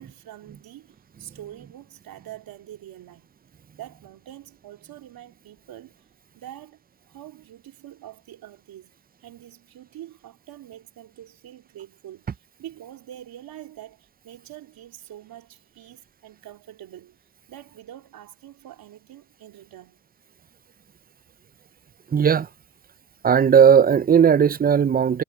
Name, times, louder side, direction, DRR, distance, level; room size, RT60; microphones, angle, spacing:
voice 1, 0.0-3.3 3.8-6.1 6.3-8.9 9.2-12.3 12.6-17.2 17.5-20.0, right 12 dB, 65° right, 3.4 m, -44 dB
voice 2, 22.1-22.5 23.2-25.2, right 7 dB, 25° right, 0.6 m, -16 dB
supercardioid pair, 70°, 37 cm